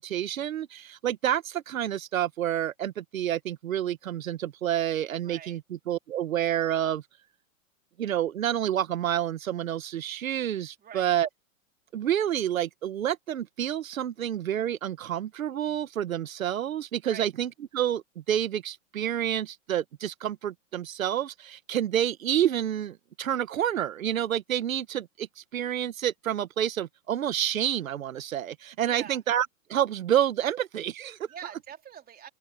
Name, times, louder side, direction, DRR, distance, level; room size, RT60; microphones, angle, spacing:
voice 1, 0.0-7.0 8.0-11.3 11.9-31.3, right 10 dB, 80° right, 1.6 m, -29 dB
voice 2, 5.2-5.6 10.8-11.2 17.1-17.3 28.8-29.2 31.3-32.3, right 9 dB, 20° right, 4.0 m, -44 dB
open air
hypercardioid pair, 125°, 40 cm